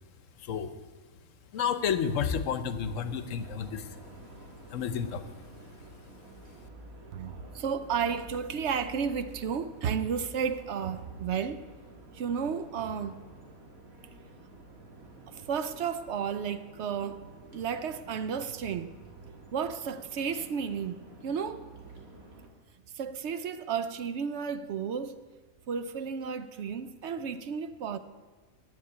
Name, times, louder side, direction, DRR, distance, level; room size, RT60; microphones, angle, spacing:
voice 1, 0.4-0.7 1.5-3.9 4.7-5.2, left 7 dB, 70° left, 1.1 m, -30 dB
sound 1, 2.8-22.5, right 2 dB, 85° right, 2.2 m, -50 dB
voice 2, 7.1-11.6 12.1-13.2 15.3-17.2 17.5-18.9 19.5-21.6 22.9-25.2 25.7-28.0, right 7 dB, 65° right, 0.8 m, -33 dB
9.8 x 7.9 x 8.6 m
omnidirectional pair, 1.5 m